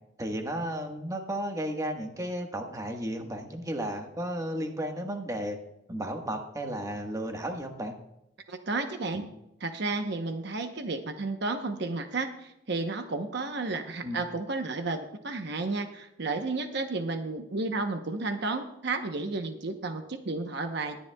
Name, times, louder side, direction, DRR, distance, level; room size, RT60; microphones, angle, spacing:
voice 1, 0.2-5.6 5.9-7.9 9.1-9.3 14.0-14.2, right 1 dB, 20° right, 3 dB, 1.4 m, -33 dB
voice 2, 8.5-9.2 9.6-21.0, right 3 dB, 65° right, 6 dB, 0.9 m, -32 dB
20.5 x 10.5 x 2.3 m, 0.87 s
head